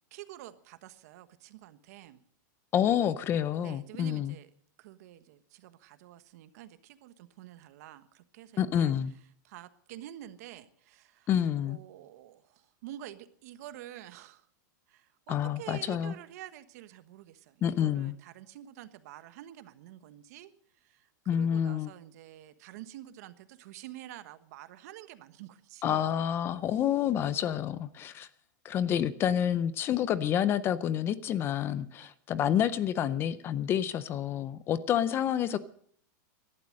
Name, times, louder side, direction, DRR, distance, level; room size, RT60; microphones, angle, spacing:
voice 1, 0.1-2.2 3.6-4.5 4.8-8.9 9.4-11.3 11.6-14.5 14.9-26.1 32.0-32.1, right 13 dB, 55° right, 1.2 m, -48 dB
voice 2, 2.7-4.3 8.6-9.1 11.3-11.8 15.3-16.1 17.6-18.1 21.3-21.9 25.8-28.3 28.6-35.6, left 9 dB, 20° left, 0.6 m, -28 dB
17.0 x 12.0 x 6.5 m
supercardioid pair, 160°, 10 cm